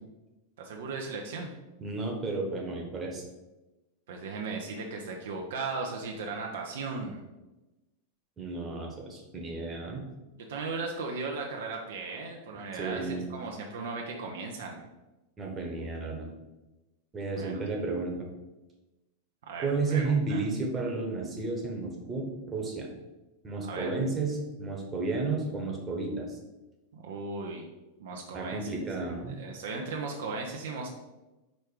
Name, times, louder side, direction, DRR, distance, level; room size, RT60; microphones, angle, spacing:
voice 1, 0.6-1.5 4.1-7.2 10.4-14.8 17.3-17.5 19.4-20.4 23.6-24.0 26.9-27.7 28.0-30.9, right 4 dB, 60° right, 1 dB, 0.8 m, -37 dB
voice 2, 1.8-3.2 8.4-10.1 12.7-13.2 15.4-16.3 17.1-18.3 19.6-22.9 23.4-26.4 28.3-29.4, right 3 dB, 20° right, 1 dB, 1.3 m, -32 dB
5.3 x 4.4 x 4.8 m, 1.1 s
figure-of-eight pair, 90°, 0 cm